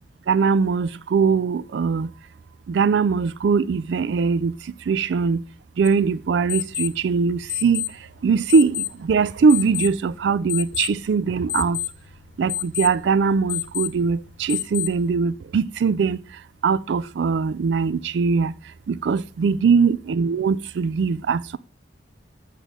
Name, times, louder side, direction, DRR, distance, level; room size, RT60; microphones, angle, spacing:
voice 1, 0.3-2.1 2.7-4.6 4.9-5.4 5.8-7.8 8.2-11.8 12.4-16.2 16.6-18.5 18.9-21.6, right 5 dB, 70° right, 0.3 m, -21 dB
sound 1, 5.8-15.2, left 13 dB, 85° left, 1.0 m, -32 dB
8.2 x 3.8 x 6.1 m
head